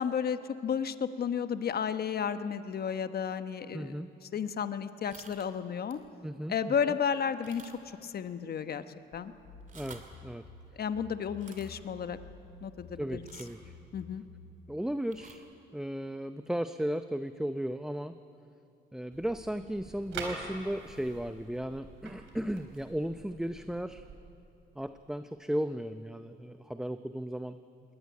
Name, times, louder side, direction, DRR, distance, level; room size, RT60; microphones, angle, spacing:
voice 1, 0.0-3.9 4.3-6.0 6.5-7.6 8.0-8.8 9.1-9.3 10.8-12.2 12.6-13.2 13.9-14.2, left 7 dB, 50° left, 11 dB, 1.1 m, -32 dB
voice 2, 3.7-4.1 6.2-7.0 9.7-10.4 13.0-13.7 14.7-15.4 15.7-18.1 18.9-24.0 24.7-27.6, equal, 5° right, 10 dB, 0.6 m, -35 dB
sound 1, 5.0-5.5 5.9-6.1 6.5-6.6 7.4-8.0 8.3-8.4 9.5-10.2 11.3-11.7 13.2-13.6 15.0-15.4, right 5 dB, 40° right, 2.7 m, -52 dB
sound 2, 9.1-14.6, left 4 dB, 80° left, 3.8 m, -52 dB
sound 3, 19.1-24.2, right 4 dB, 85° right, 4.0 m, -46 dB
22.0 x 18.0 x 9.5 m, 2.8 s
cardioid pair, 90°, 20 cm